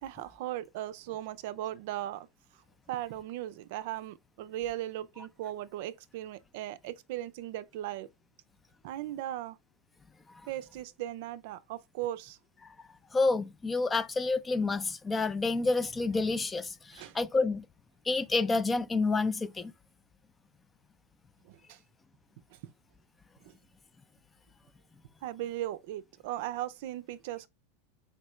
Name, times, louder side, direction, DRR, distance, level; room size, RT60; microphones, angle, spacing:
voice 1, 0.0-2.3 2.9-8.1 8.8-9.6 10.5-12.4 16.9-17.2 21.5-21.8 23.4-23.5 25.2-27.5, right 13 dB, 65° right, 0.4 m, -38 dB
voice 2, 13.1-17.7 18.1-19.7, left 3 dB, 15° left, 0.4 m, -29 dB
4.3 x 3.1 x 3.1 m
supercardioid pair, 140°, 0 cm